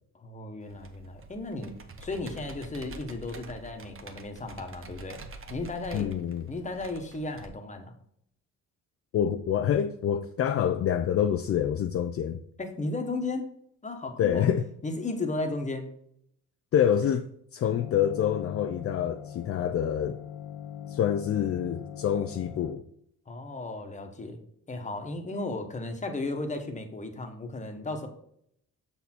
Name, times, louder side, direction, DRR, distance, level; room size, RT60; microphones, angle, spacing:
voice 1, 0.1-1.8 2.0-5.2 5.5-7.9 12.6-13.5 13.8-14.5 14.8-15.9 23.3-24.4 24.7-28.1, left 2 dB, 25° left, 1.2 m, -35 dB
Computer keyboard, 0.7-7.5, right 2 dB, 45° right, 1.0 m, -46 dB
voice 2, 5.9-6.5 9.1-12.4 14.2-14.6 16.7-20.2 20.9-22.8, left 9 dB, 50° left, 0.5 m, -27 dB
sound 1, 17.7-22.7, left 9 dB, 85° left, 0.8 m, -41 dB
6.8 x 4.2 x 4.4 m
cardioid pair, 90°, 30 cm